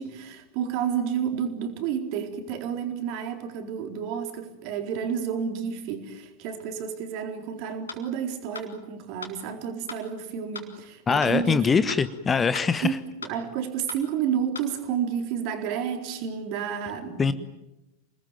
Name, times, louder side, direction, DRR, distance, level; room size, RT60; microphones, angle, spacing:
voice 1, 0.0-11.6 12.8-12.9 13.2-17.3, right 8 dB, 45° right, 5 dB, 4.2 m, -30 dB
sound 1, 7.9-8.0 8.5-8.7 9.2-9.3 9.9-10.0 10.5-10.7 11.2-11.3 11.9-12.0 12.5-12.7 13.2-13.3 13.9-14.0 14.5-14.7, left 5 dB, 75° left, 4.0 m, -38 dB
voice 2, 11.1-13.0 17.2-17.3, left 5 dB, 15° left, 14 dB, 1.1 m, -23 dB
28.0 x 20.0 x 9.2 m, 0.96 s
figure-of-eight pair, 90°, 0 cm